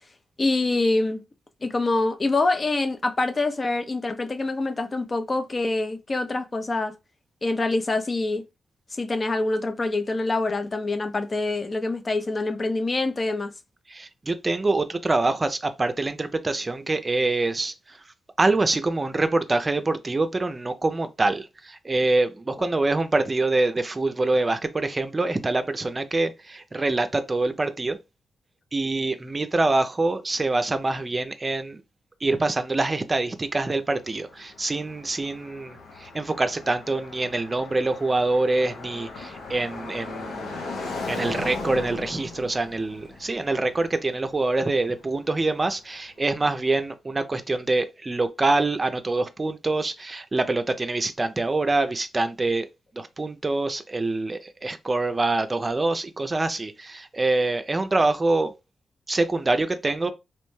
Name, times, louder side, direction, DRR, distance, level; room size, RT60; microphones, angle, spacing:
voice 1, 0.4-1.2 1.6-6.9 7.4-8.4 8.9-13.5, left 2 dB, 40° left, 0.5 m, -25 dB
voice 2, 13.9-18.0 18.4-28.0 28.7-31.8 32.2-40.6 41.1-52.7 52.9-58.5 59.1-60.1, right 2 dB, 35° right, 0.5 m, -25 dB
Car passing by, 33.7-45.7, left 3 dB, 85° left, 0.8 m, -38 dB
3.0 x 2.1 x 3.1 m
supercardioid pair, 50°, 0 cm